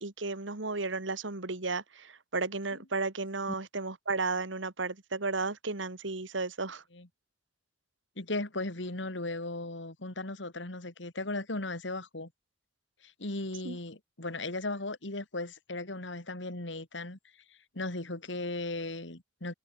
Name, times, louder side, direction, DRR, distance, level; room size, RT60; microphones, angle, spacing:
voice 1, 0.0-6.8 13.6-13.8, right 3 dB, 85° right, 2.1 m, -34 dB
voice 2, 8.2-12.3 13.0-17.2 17.7-19.5, left 2 dB, 75° left, 2.9 m, -37 dB
head